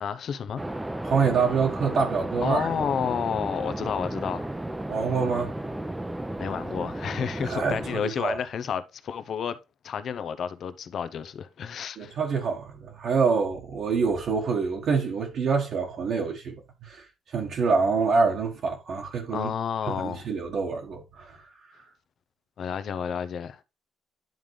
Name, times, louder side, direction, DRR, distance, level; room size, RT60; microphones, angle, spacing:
voice 1, 0.0-0.6 2.4-4.5 6.4-9.6 9.8-12.1 19.3-20.3 22.6-23.6, left 7 dB, 60° left, 0.6 m, -31 dB
sound 1, 0.6-8.0, right 1 dB, 10° right, 0.6 m, -34 dB
voice 2, 1.0-2.7 4.9-5.5 7.4-8.4 12.0-19.5 19.9-21.8, right 5 dB, 65° right, 1.4 m, -26 dB
10.5 x 3.7 x 3.2 m
cardioid pair, 90°, 0 cm